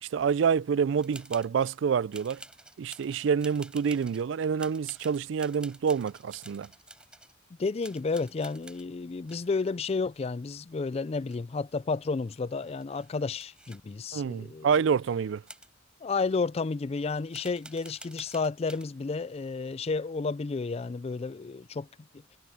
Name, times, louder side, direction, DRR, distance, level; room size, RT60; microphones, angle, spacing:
voice 1, 0.0-2.4 2.8-6.7 14.1-15.4, right 6 dB, 70° right, 0.3 m, -27 dB
sound 1, 1.0-1.8 2.1-4.3 4.6-7.4 7.8-8.9 9.3-10.7 11.0-11.7 12.0-12.1 12.3-13.8 14.7-14.8 15.5-15.7 16.3-16.4 17.3-18.9, right 1 dB, 5° right, 4.7 m, -50 dB
voice 2, 7.6-14.7 16.0-21.9, left 4 dB, 30° left, 0.4 m, -31 dB
head